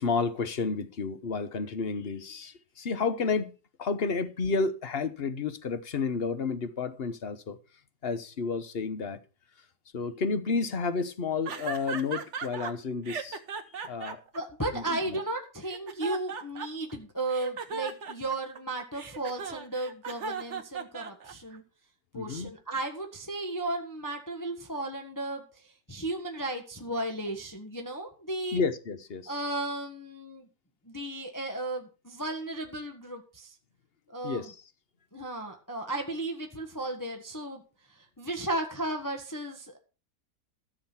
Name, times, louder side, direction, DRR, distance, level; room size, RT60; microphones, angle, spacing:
voice 1, 0.0-3.5 3.8-7.6 8.0-9.2 9.9-13.4 13.9-14.2 14.7-15.2 22.1-22.5 28.5-29.3 34.2-34.5, left 4 dB, 40° left, 1.0 m, -31 dB
sound 1, 11.5-12.7 13.1-15.2 15.6-16.9 17.3-21.6, right 5 dB, 45° right, 1.3 m, -37 dB
voice 2, 14.3-21.6 22.1-28.6 29.3-30.5 30.8-33.5 34.1-34.5 35.1-37.6 37.9-39.8, right 2 dB, 10° left, 1.4 m, -35 dB
14.0 x 6.5 x 5.8 m
omnidirectional pair, 1.9 m